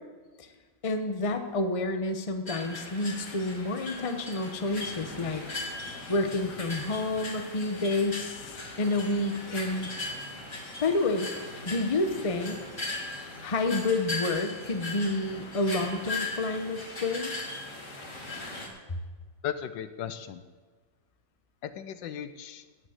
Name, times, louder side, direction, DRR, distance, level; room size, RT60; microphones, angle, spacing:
voice 1, 0.8-5.4 6.1-9.9 10.8-11.3 11.6-12.6 13.4-17.3, left 2 dB, 25° left, 6 dB, 0.8 m, -29 dB
sound 1, 2.5-18.7, left 2 dB, 40° left, 2.5 m, -38 dB
voice 2, 19.4-20.4 21.6-22.6, left 9 dB, 80° left, 11 dB, 1.4 m, -36 dB
17.5 x 6.3 x 8.0 m, 1.4 s
omnidirectional pair, 2.0 m